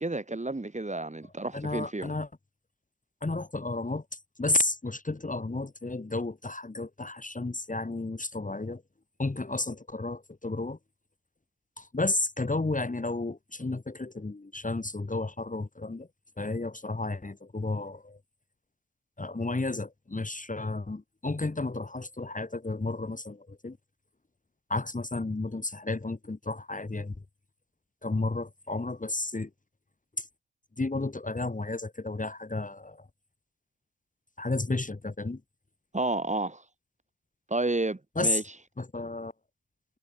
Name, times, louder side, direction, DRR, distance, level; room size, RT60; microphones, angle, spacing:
voice 1, 0.0-2.1 35.9-36.6 37.5-38.4, right 2 dB, 15° right, 3.6 m, -31 dB
voice 2, 1.5-2.3 3.2-8.8 9.2-10.8 11.8-16.1 16.4-18.2 19.2-23.8 24.7-27.1 28.0-29.5 30.2-30.3 30.8-33.1 34.4-35.4 38.1-38.4 38.8-39.3, left 2 dB, 15° left, 3.2 m, -32 dB
hypercardioid pair, 50°, 47 cm